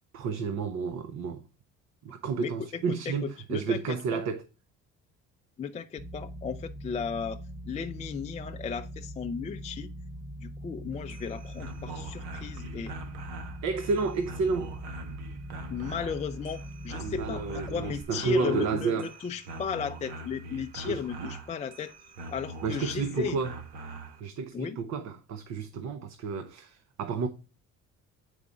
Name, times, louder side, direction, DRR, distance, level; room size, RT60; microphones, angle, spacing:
voice 1, 0.1-1.4 2.0-4.4 13.6-14.8 17.0-19.1 20.9-21.3 22.6-23.6 24.2-27.3, right 5 dB, 60° right, 0.7 m, -31 dB
voice 2, 2.9-4.2 5.6-7.4 7.7-9.9 10.4-13.0 15.7-21.9 22.3-23.4 24.5-24.8, left 7 dB, 20° left, 0.4 m, -35 dB
sound 1, 6.0-18.0, equal, 10° right, 0.8 m, -42 dB
sound 2, 10.9-24.2, right 2 dB, 85° right, 1.2 m, -43 dB
7.2 x 4.8 x 3.8 m
cardioid pair, 120°, 31 cm